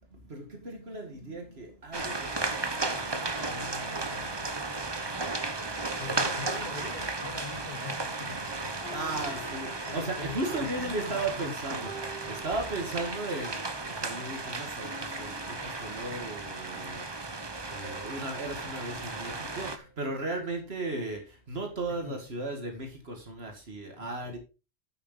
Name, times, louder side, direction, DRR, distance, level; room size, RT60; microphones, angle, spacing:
voice 1, 0.3-4.1 8.9-11.9 12.3-17.0 17.7-21.2 21.5-24.4, right 2 dB, 65° right, 2.1 m, -36 dB
sound 1, 1.9-19.8, right 3 dB, 25° right, 0.9 m, -35 dB
voice 2, 6.0-8.8 9.1-9.4 9.9-11.5 21.9-22.2 24.0-24.4, left 5 dB, 45° left, 1.3 m, -43 dB
sound 2, 11.8-13.4 13.8-14.1 14.8-16.7 17.8-20.2, equal, 75° left, 3.4 m, -51 dB
8.9 x 8.1 x 3.9 m
omnidirectional pair, 1.1 m